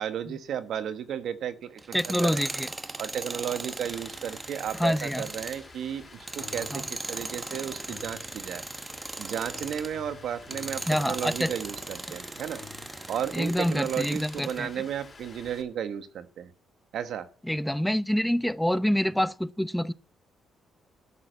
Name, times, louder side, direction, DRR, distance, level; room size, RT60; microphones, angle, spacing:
voice 1, 0.0-2.5 3.0-8.6 9.2-12.6 13.1-16.5 16.9-17.3, right 9 dB, 70° right, 1.3 m, -34 dB
Tools, 1.8-10.0 10.4-14.6, right 2 dB, 20° right, 0.9 m, -38 dB
voice 2, 1.9-2.7 4.8-5.3 6.7-6.8 10.9-11.5 13.3-14.7 17.5-19.9, equal, 5° left, 0.6 m, -26 dB
Rain, 3.9-15.6, left 4 dB, 35° left, 4.0 m, -50 dB
sound 1, 6.4-7.1 7.5-8.4 9.6-12.9, left 8 dB, 60° left, 1.5 m, -50 dB
13.5 x 6.4 x 8.9 m
cardioid pair, 90°, 0 cm